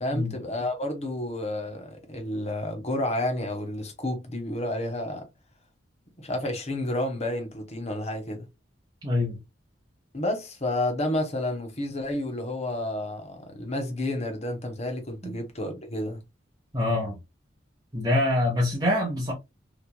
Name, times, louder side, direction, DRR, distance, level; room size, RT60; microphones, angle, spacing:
voice 1, 0.0-5.2 6.2-8.4 10.1-16.2, left 1 dB, 35° left, 0.9 m, -30 dB
voice 2, 9.0-9.4 15.2-15.4 16.7-17.2 17.9-19.3, left 1 dB, 20° right, 0.7 m, -25 dB
3.0 x 2.5 x 2.2 m
head